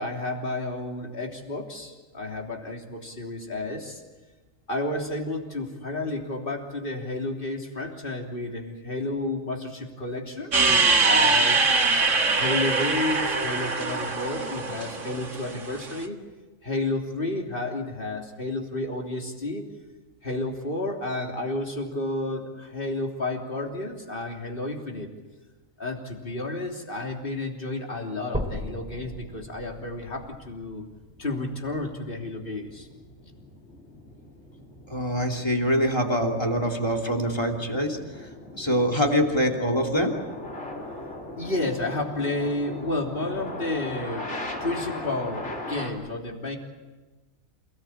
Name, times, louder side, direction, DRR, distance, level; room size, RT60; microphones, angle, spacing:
voice 1, 0.0-4.0 4.7-11.7 12.3-16.2 16.6-19.7 20.2-25.1 25.8-30.8 31.2-32.9 41.4-44.3 44.6-46.6, left 2 dB, 40° left, 0 dB, 3.5 m, -31 dB
sound 1, 10.5-15.9, right 3 dB, 65° right, 2.2 m, -23 dB
sound 2, 28.3-32.3 32.9-33.0 33.6-33.7 34.0-34.1 34.9-35.0, equal, 5° right, 3.5 m, -37 dB
sound 3, 30.4-45.9, left 1 dB, 55° left, 3.8 m, -39 dB
voice 2, 34.9-38.3 38.6-40.2, equal, 20° left, 1 dB, 3.0 m, -24 dB
28.5 x 18.5 x 8.7 m, 1.2 s
omnidirectional pair, 1.4 m